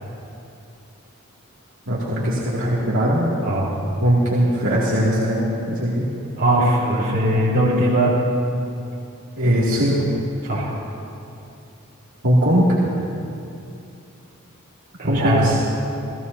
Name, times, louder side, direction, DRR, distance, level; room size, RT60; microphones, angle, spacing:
voice 1, 1.9-3.3 4.0-6.1 9.4-10.1 12.2-12.7 15.0-15.6, equal, 65° right, -7 dB, 2.4 m, -20 dB
voice 2, 3.4-3.7 6.4-8.1 10.4-10.7 15.0-15.6, right 1 dB, 45° right, -6 dB, 3.8 m, -20 dB
29.0 x 16.0 x 2.7 m, 2.6 s
head